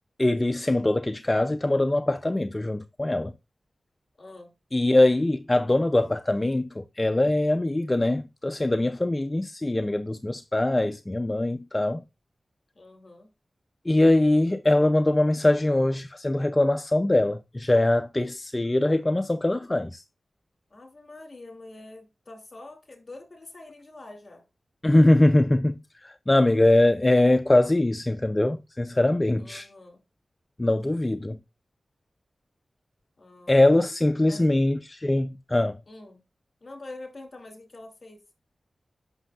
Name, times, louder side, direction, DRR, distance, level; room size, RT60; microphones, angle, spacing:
voice 1, 0.2-3.3 4.7-12.0 13.9-20.0 24.8-29.7 30.6-31.4 33.5-35.8, left 1 dB, 25° left, 0.4 m, -22 dB
voice 2, 4.2-4.5 12.7-13.3 20.7-24.4 29.4-30.0 33.2-33.6 34.3-34.5 35.9-36.2 36.6-38.2, left 2 dB, 45° left, 2.5 m, -45 dB
7.9 x 6.2 x 2.4 m
cardioid pair, 55°, 0 cm